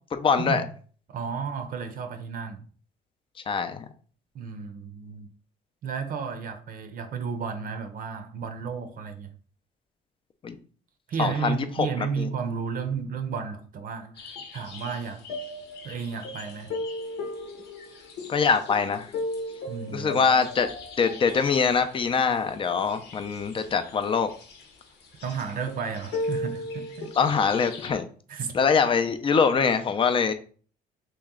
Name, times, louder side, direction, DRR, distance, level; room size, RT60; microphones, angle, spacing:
voice 1, 0.2-0.6 3.5-3.8 10.4-10.6 11.2-12.3 18.3-19.1 19.9-20.7 21.0-24.3 27.1-28.1 28.5-30.3, left 5 dB, 30° left, 0.5 m, -23 dB
voice 2, 1.1-2.7 4.3-5.3 5.8-9.3 11.1-15.2 15.8-16.7 19.7-20.4 25.2-27.1 28.3-28.6, right 6 dB, 50° right, 0.6 m, -33 dB
sound 1, 14.2-27.9, left 2 dB, 75° left, 1.0 m, -37 dB
3.2 x 3.0 x 3.6 m
cardioid pair, 110°, 18 cm